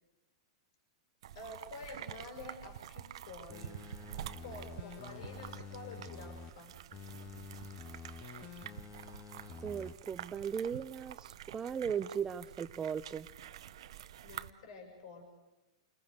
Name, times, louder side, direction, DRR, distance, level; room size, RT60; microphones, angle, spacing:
sound 1, 1.2-14.5, right 11 dB, 70° right, 0.9 m, -48 dB
voice 1, 1.3-3.7 4.4-6.7 14.2-15.3, left 3 dB, 65° left, 3 dB, 6.4 m, -49 dB
sound 2, 3.5-6.5 6.9-9.9 10.3-10.4, left 6 dB, 40° left, 2.2 m, -49 dB
voice 2, 9.6-13.3, right 7 dB, 20° right, 17 dB, 0.8 m, -37 dB
29.5 x 20.0 x 6.7 m, 1.1 s
hypercardioid pair, 120°, 3 cm